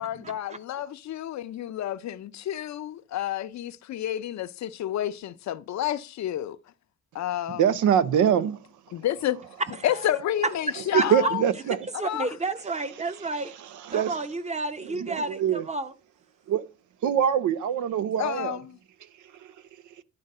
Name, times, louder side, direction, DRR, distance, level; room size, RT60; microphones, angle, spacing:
voice 1, 0.0-6.6 7.1-7.7 8.9-9.4 9.8-11.4 11.9-12.3 18.2-18.8, left 12 dB, 65° left, 0.7 m, -30 dB
voice 2, 7.5-8.6 10.9-11.9 13.9-14.2 14.8-15.6 16.5-16.6 17.0-18.6, right 9 dB, 75° right, 0.7 m, -24 dB
voice 3, 12.0-13.5 13.9-15.9, right 2 dB, 20° right, 0.9 m, -31 dB
10.5 x 3.9 x 6.6 m
cardioid pair, 90°, 30 cm